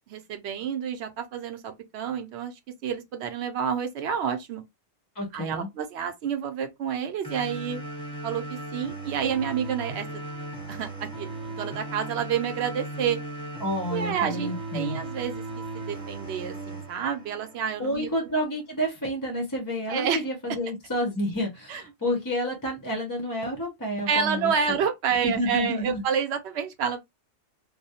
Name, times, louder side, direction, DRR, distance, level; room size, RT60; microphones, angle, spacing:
voice 1, 0.1-2.5 2.8-4.6 5.3-7.8 8.2-10.3 10.7-13.2 13.9-15.4 15.7-18.1 19.9-20.2 21.7-21.8 24.1-27.0, right 7 dB, 65° right, 0.8 m, -29 dB
voice 2, 5.2-5.7 13.6-15.0 17.8-24.5 25.2-26.0, equal, 30° left, 0.4 m, -29 dB
sound 1, 7.2-18.2, right 2 dB, 5° left, 0.7 m, -37 dB
2.2 x 2.0 x 2.7 m
omnidirectional pair, 1.3 m